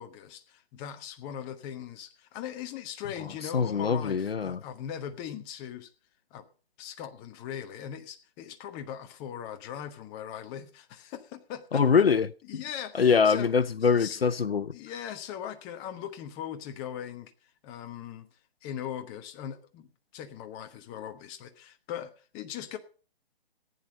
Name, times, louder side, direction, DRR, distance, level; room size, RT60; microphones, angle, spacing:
voice 1, 0.0-5.9 6.3-6.4 6.8-11.8 12.5-13.5 13.8-14.2 14.7-17.3 17.6-18.3 18.6-19.9 20.1-22.8, left 9 dB, 15° left, 0.9 m, -40 dB
voice 2, 3.4-4.6 11.7-12.6 12.9-14.7, left 6 dB, 65° left, 0.8 m, -24 dB
14.5 x 9.6 x 5.4 m
figure-of-eight pair, 140°, 32 cm